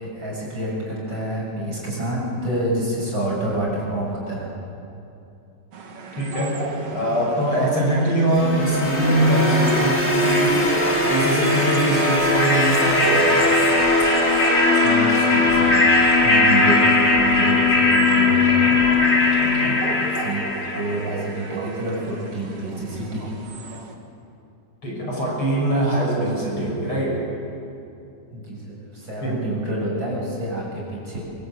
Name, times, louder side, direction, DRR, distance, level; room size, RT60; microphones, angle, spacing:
voice 1, 0.0-4.5 14.8-15.9 16.2-18.8 20.2-20.4 20.7-23.4 28.3-31.2, right 1 dB, 30° right, -4 dB, 7.9 m, -28 dB
sound 1, 5.7-23.9, right 3 dB, 45° right, 2.8 m, -36 dB
voice 2, 6.2-6.6 6.9-10.7 11.0-13.5 19.4-19.8 24.8-27.2 29.2-29.4, right 1 dB, 35° left, -3 dB, 6.9 m, -22 dB
sound 2, 8.4-21.3, left 2 dB, 15° left, 4.4 m, -19 dB
26.5 x 25.0 x 8.4 m, 2.7 s
omnidirectional pair, 4.2 m